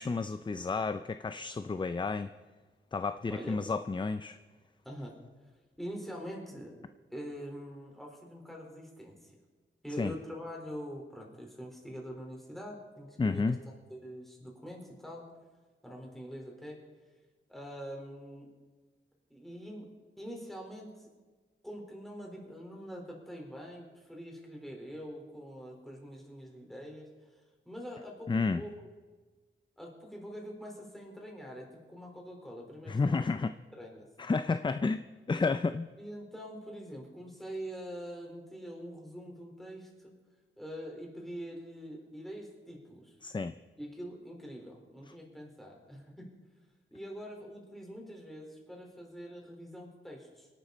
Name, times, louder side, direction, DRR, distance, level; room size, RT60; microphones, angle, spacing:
voice 1, 0.0-2.3 2.9-4.4 10.0-10.1 13.2-13.6 28.3-28.6 32.9-33.5 34.2-35.9 43.2-43.6, left 4 dB, 25° left, 11 dB, 0.4 m, -31 dB
voice 2, 4.8-5.2 5.8-6.7 7.1-9.3 9.8-13.5 13.9-15.2 15.8-16.8 17.5-18.5 19.3-19.9 20.2-21.1 21.6-28.7 29.8-33.3 33.8-34.1 36.0-40.1 40.6-43.2 43.8-46.3 46.9-50.5, equal, ahead, 0 dB, 4.4 m, -44 dB
26.0 x 11.5 x 4.2 m, 1.4 s
wide cardioid pair, 105°, 21 cm